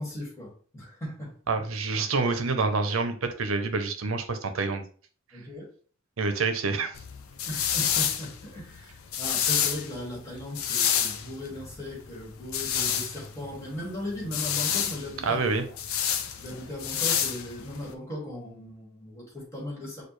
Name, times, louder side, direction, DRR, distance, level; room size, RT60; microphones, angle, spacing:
voice 1, 0.0-1.3 5.3-5.7 7.5-15.4 16.4-20.1, left 1 dB, 15° left, -3 dB, 1.8 m, -37 dB
voice 2, 1.5-4.8 6.2-6.9 15.2-15.6, right 4 dB, 75° right, 7 dB, 0.7 m, -27 dB
sound 1, 6.9-17.9, left 8 dB, 90° left, 0.5 m, -29 dB
6.6 x 2.4 x 3.2 m, 0.44 s
head